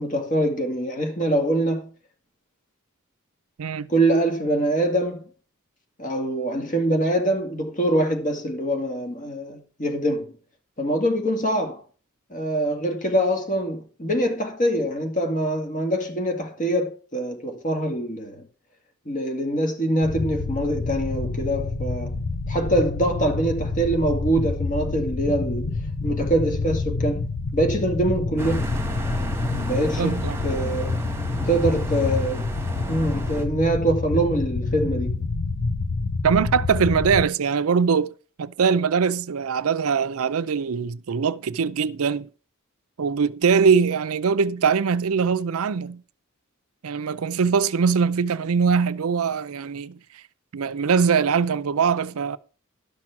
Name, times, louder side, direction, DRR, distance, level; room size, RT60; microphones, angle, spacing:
voice 1, 0.0-1.9 3.9-5.3 6.0-10.3 10.8-11.8 12.3-18.4 19.1-22.1 22.5-25.7 26.0-27.2 27.5-28.6 29.3-30.2 30.4-31.0 31.5-32.5 32.9-35.2, right 1 dB, 35° left, 2.2 m, -24 dB
voice 2, 3.6-3.9 30.0-30.4 36.2-38.1 38.4-42.3 43.0-46.0 46.8-50.0 50.5-52.4, right 6 dB, 80° right, 0.5 m, -22 dB
sound 1, 20.0-37.3, left 3 dB, 75° left, 0.8 m, -28 dB
sound 2, 28.4-33.5, right 1 dB, 10° right, 1.6 m, -34 dB
12.0 x 6.1 x 5.9 m
head